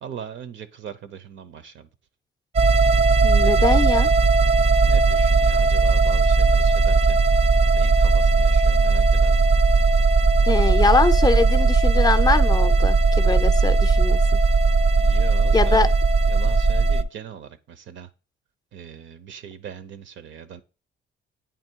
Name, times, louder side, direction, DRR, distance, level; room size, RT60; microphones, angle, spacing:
voice 1, 0.0-1.9 3.4-4.1 4.8-7.2 7.7-9.5 14.9-15.9 16.3-18.1 18.7-20.6, right 8 dB, 70° right, 0.7 m, -39 dB
sound 1, 2.5-17.0, right 3 dB, 30° right, 0.5 m, -18 dB
voice 2, 3.2-4.1 10.5-14.2 15.5-15.9, left 3 dB, 20° left, 0.5 m, -22 dB
8.8 x 3.0 x 4.5 m
cardioid pair, 90°, 20 cm